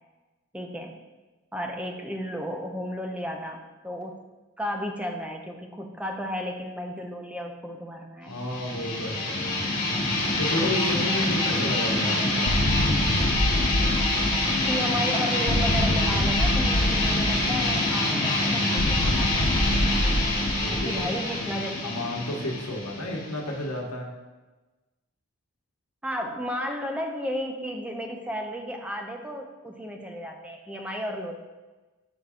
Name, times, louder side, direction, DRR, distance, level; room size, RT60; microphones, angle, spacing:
voice 1, 0.5-1.0 1.5-4.2 4.6-8.4 14.5-19.7 20.7-22.0 26.0-31.3, equal, 5° right, 2 dB, 0.4 m, -33 dB
voice 2, 8.3-9.7 10.4-12.6 20.6-21.1 21.8-24.1, left 1 dB, 90° left, 0 dB, 1.1 m, -31 dB
sound 1, 8.3-23.8, left 2 dB, 40° left, 1.5 m, -26 dB
sound 2, 12.5-14.8 15.5-17.8 18.8-21.0, left 1 dB, 65° left, 0.7 m, -26 dB
5.6 x 3.6 x 4.9 m, 1.2 s
head